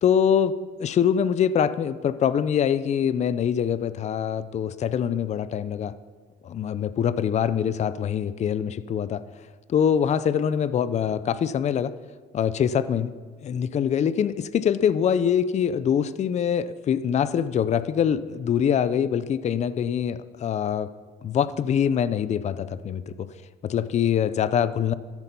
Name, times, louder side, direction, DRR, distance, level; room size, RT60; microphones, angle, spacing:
voice 1, 0.0-6.0 6.4-9.2 9.7-11.9 12.3-13.1 13.4-20.9 21.2-23.3 23.6-24.9, left 8 dB, 40° left, 15 dB, 0.6 m, -24 dB
13.5 x 12.5 x 5.5 m, 1.5 s
cardioid pair, 110°, 17 cm